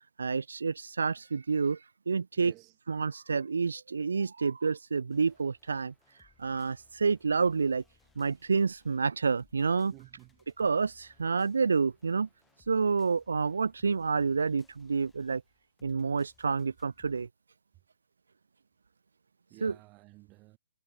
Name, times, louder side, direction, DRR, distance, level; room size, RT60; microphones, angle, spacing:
voice 1, 0.2-2.5 2.9-5.9 6.2-7.8 8.2-9.9 10.6-12.3 12.7-15.4 15.8-17.3 19.6-19.8, right 5 dB, 85° right, 0.4 m, -29 dB
voice 2, 2.4-2.7 9.9-10.4 19.5-20.6, right 22 dB, 20° right, 1.7 m, -53 dB
sound 1, 5.1-17.3, left 5 dB, 5° left, 5.9 m, -68 dB
hypercardioid pair, 165°, 0 cm